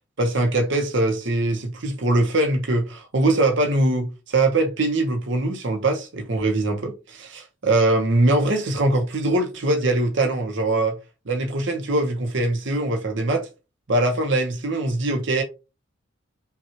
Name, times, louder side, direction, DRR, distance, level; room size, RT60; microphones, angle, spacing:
voice 1, 0.2-11.0 11.3-13.5 13.9-15.4, right 2 dB, 60° right, 0.8 m, -22 dB
5.7 x 2.3 x 2.9 m
head